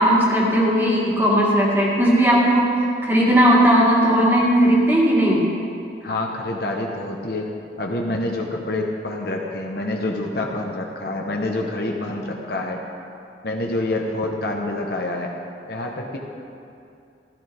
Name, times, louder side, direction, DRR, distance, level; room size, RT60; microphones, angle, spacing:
voice 1, 0.0-2.7 3.0-5.5, equal, 10° right, -5 dB, 2.1 m, -17 dB
voice 2, 6.0-7.5 7.8-12.8 13.4-15.4 15.7-16.2, left 2 dB, 60° left, 1 dB, 1.2 m, -27 dB
15.0 x 13.0 x 3.6 m, 2.5 s
head